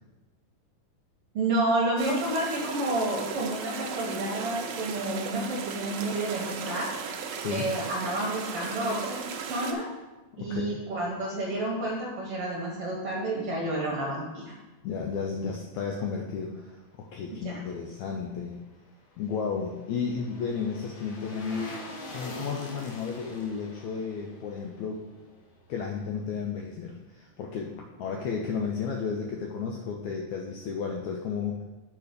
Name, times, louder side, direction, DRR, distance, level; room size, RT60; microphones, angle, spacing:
voice 1, 1.3-6.9 7.5-9.8 10.4-14.5 17.3-17.6, right 1 dB, 60° right, -3 dB, 1.7 m, -30 dB
sound 1, 2.0-9.7, right 6 dB, 90° right, 1.4 m, -36 dB
voice 2, 7.4-7.7 10.3-10.8 14.8-18.6 19.2-21.8 22.1-25.0 25.7-31.6, left 5 dB, 80° left, 1 dB, 1.7 m, -33 dB
sound 2, 18.8-26.0 26.3-26.4, left 2 dB, 65° left, 2.4 m, -44 dB
6.5 x 5.7 x 5.1 m, 1.1 s
omnidirectional pair, 3.9 m